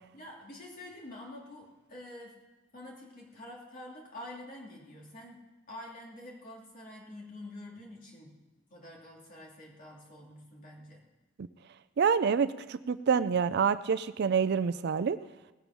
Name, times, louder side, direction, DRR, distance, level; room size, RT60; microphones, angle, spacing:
voice 1, 0.1-2.4 2.7-8.3 8.7-11.0, left 1 dB, 45° left, -2 dB, 2.9 m, -47 dB
voice 2, 12.0-15.2, right 6 dB, 55° right, 12 dB, 0.4 m, -27 dB
18.5 x 7.1 x 5.9 m, 1.1 s
head